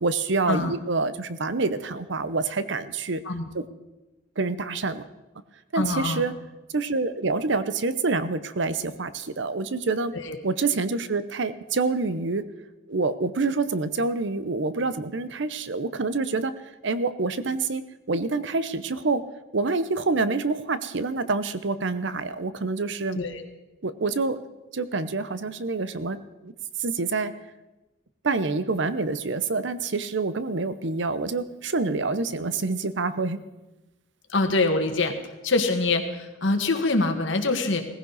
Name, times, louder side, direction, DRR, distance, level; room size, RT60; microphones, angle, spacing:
voice 1, 0.0-3.2 3.5-3.6 4.4-5.1 5.7-6.3 6.7-10.1 10.4-12.5 12.9-19.2 19.5-23.2 23.8-24.4 24.7-26.5 26.8-27.3 28.2-33.4, right 3 dB, 65° right, 13 dB, 0.8 m, -27 dB
voice 2, 5.7-6.2 10.1-10.4 23.1-23.4 34.3-35.1 35.4-37.8, left 3 dB, 70° left, 5 dB, 1.7 m, -24 dB
18.0 x 15.5 x 4.1 m, 1.0 s
head